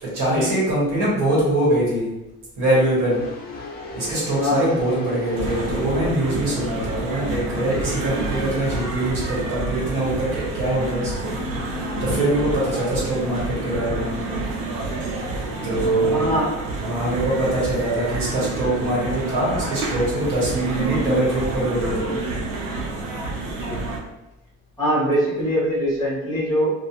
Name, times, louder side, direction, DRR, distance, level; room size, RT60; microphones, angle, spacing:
voice 1, 0.0-2.1 2.6-3.3 3.9-11.6 12.0-14.2 15.6-16.2 16.8-22.2, right 1 dB, 70° right, -6 dB, 1.3 m, -23 dB
sound 1, 3.1-8.9, left 2 dB, 30° left, 0.4 m, -36 dB
voice 2, 4.4-4.7 16.0-16.5 23.6-23.8 24.8-26.7, equal, 10° left, -8 dB, 0.8 m, -22 dB
sound 2, 5.3-24.0, right 2 dB, 85° right, 0.7 m, -28 dB
2.3 x 2.3 x 2.8 m, 0.99 s
cardioid pair, 155°, 34 cm